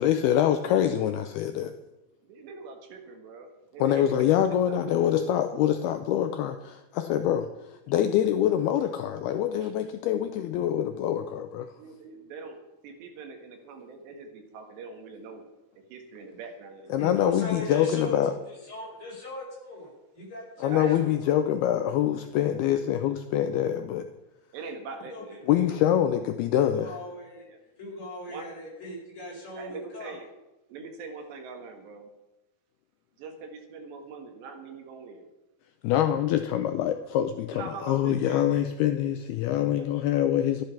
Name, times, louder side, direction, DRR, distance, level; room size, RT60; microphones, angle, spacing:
voice 1, 0.0-1.7 3.8-11.7 16.9-18.3 20.6-24.1 25.5-26.9 35.8-40.6, left 10 dB, 80° left, 8 dB, 2.4 m, -25 dB
voice 2, 2.2-3.5 3.7-5.1 5.4-5.6 9.6-9.7 11.8-12.6 12.8-15.5 15.9-17.2 17.4-17.5 20.7-21.0 22.3-22.7 24.5-25.5 27.5-27.6 28.3-28.5 29.6-30.3 30.7-32.1 33.2-35.3 37.5-38.5 39.7-39.9, right 4 dB, 75° right, 4 dB, 3.8 m, -43 dB
voice 3, 17.0-18.1 18.5-21.4 25.1-25.2 25.5-25.6 26.7-27.5 27.8-30.1, left 1 dB, 30° left, -4 dB, 6.2 m, -39 dB
13.5 x 11.5 x 5.9 m, 1.0 s
omnidirectional pair, 5.1 m